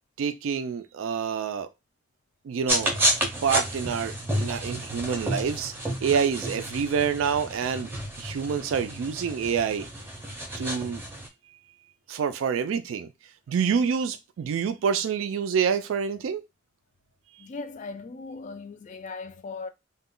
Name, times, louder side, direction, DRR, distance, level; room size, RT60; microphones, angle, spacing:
voice 1, 0.2-1.7 2.5-3.1 3.4-5.7 6.0-7.9 8.2-9.9 10.6-11.0 12.1-13.1 13.5-16.4, right 6 dB, 80° right, 0.3 m, -27 dB
sound 1, 2.7-11.3, equal, 10° right, 0.6 m, -30 dB
voice 2, 17.4-19.7, left 4 dB, 40° left, 0.3 m, -38 dB
2.2 x 2.1 x 3.7 m
head